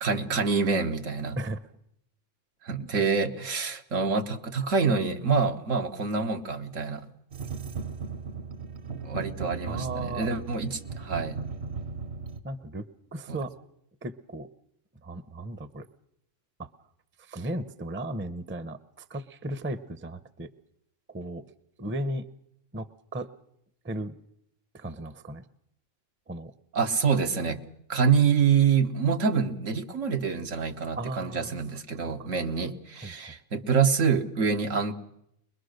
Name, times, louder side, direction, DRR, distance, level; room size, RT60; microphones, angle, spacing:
voice 1, 0.0-1.4 2.6-7.1 9.0-11.4 13.3-13.4 26.7-27.6 27.9-34.9, right 5 dB, 85° right, 5 dB, 1.7 m, -26 dB
sound 1, 7.3-12.4, right 5 dB, 60° right, 1.3 m, -36 dB
voice 2, 9.7-10.3 12.4-13.5 14.0-14.5 15.0-15.9 16.6-16.7 17.2-20.5 21.1-21.5 21.8-22.3 22.7-23.3 23.8-24.2 24.7-25.5 26.3-26.5 31.0-31.5 32.0-32.3 33.0-33.3, right 1 dB, 15° right, 14 dB, 0.6 m, -36 dB
23.0 x 21.5 x 6.6 m, 0.78 s
omnidirectional pair, 1.3 m